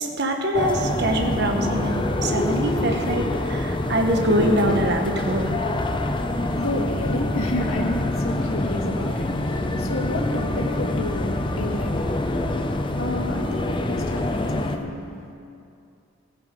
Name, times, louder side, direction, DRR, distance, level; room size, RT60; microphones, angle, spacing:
voice 1, 0.0-5.5, right 1 dB, 50° right, 3 dB, 1.0 m, -24 dB
sound 1, 0.5-14.8, left 1 dB, 25° left, 0.7 m, -25 dB
voice 2, 6.5-12.1 13.0-15.4, left 1 dB, 90° left, 1 dB, 1.7 m, -30 dB
15.5 x 9.7 x 5.2 m, 2.5 s
head